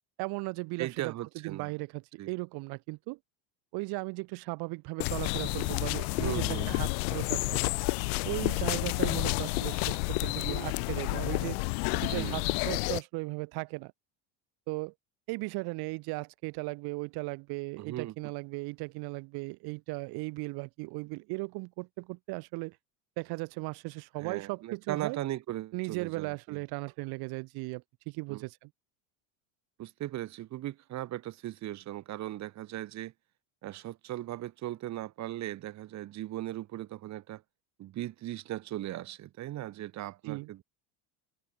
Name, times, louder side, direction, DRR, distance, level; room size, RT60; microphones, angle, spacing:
voice 1, 0.2-1.1 1.4-3.2 3.7-7.5 8.2-11.6 12.0-13.9 14.7-14.9 15.3-22.8 23.2-25.2 25.7-28.7 40.2-40.5, right 26 dB, 55° right, 2.5 m, -37 dB
voice 2, 0.8-1.7 2.2-2.3 6.1-6.9 11.9-12.4 17.8-18.1 24.2-26.6 28.3-28.4 29.8-33.1 33.6-37.4 37.8-40.7, right 14 dB, 40° right, 2.7 m, -38 dB
sound 1, 5.0-13.0, left 32 dB, 75° left, 2.5 m, -30 dB
cardioid pair, 155°, 44 cm